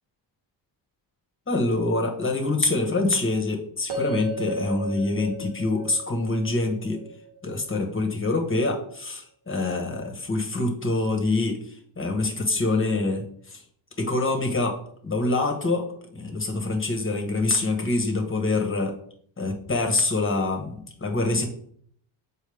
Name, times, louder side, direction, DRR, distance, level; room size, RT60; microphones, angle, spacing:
voice 1, 1.5-7.0 7.4-13.6 14.0-14.8 15.0-15.9 16.1-18.9 19.4-21.5, left 2 dB, 25° left, 2 dB, 1.5 m, -25 dB
sound 1, 3.9-8.0, equal, 70° right, 1.8 m, -34 dB
6.5 x 4.6 x 3.5 m, 0.63 s
cardioid pair, 75°, 50 cm